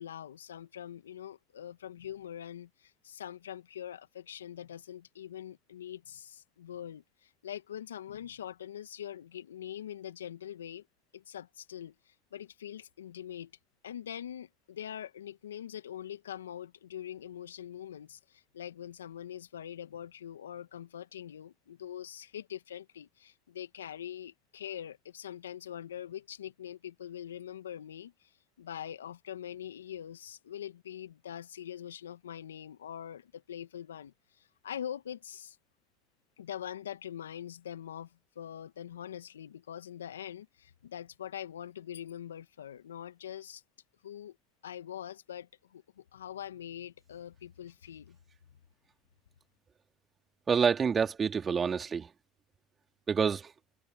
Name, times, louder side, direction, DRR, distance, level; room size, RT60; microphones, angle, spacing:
voice 1, 0.0-10.9 11.1-13.5 13.8-28.3 28.6-35.6 36.4-43.6 44.0-44.4 44.6-48.2, left 10 dB, 85° left, 1.9 m, -43 dB
voice 2, 50.5-52.1 53.1-53.5, right 6 dB, 30° right, 3.6 m, -27 dB
hypercardioid pair, 70°, 0 cm